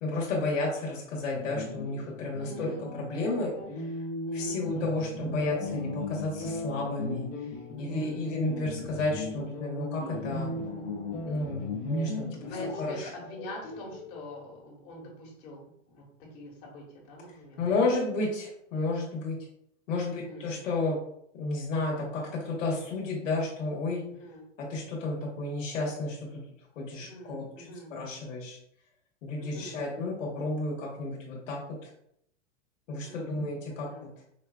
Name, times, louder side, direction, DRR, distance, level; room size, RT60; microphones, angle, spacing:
voice 1, 0.0-3.5 4.3-7.3 7.8-10.5 11.2-12.4 12.8-13.1 17.6-19.4 19.9-21.0 21.4-24.0 24.7-26.3 26.8-28.6 29.2-31.6 32.9-34.1, left 2 dB, 80° left, -2 dB, 1.1 m, -32 dB
sound 1, 1.3-14.6, left 2 dB, 25° left, 0.4 m, -37 dB
voice 2, 2.4-2.9 3.1-3.4 4.3-4.6 7.8-8.3 12.4-16.0 16.3-17.6 20.1-20.6 24.1-24.5 26.9-27.9 29.4-29.9 32.9-33.4 33.7-34.1, equal, 40° left, -2 dB, 1.3 m, -45 dB
4.5 x 2.3 x 2.2 m, 0.73 s
hypercardioid pair, 130°, 38 cm